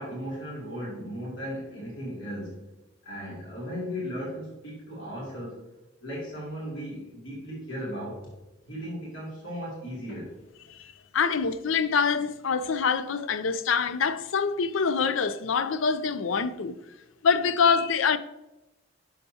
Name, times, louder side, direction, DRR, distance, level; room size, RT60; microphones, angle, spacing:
voice 1, 0.0-2.6 3.0-5.6 6.0-8.3 8.7-10.3, equal, 70° left, 2.9 m, -36 dB
voice 2, 10.7-16.8 17.2-18.2, left 5 dB, 85° left, 0.5 m, -25 dB
10.0 x 6.6 x 2.8 m
head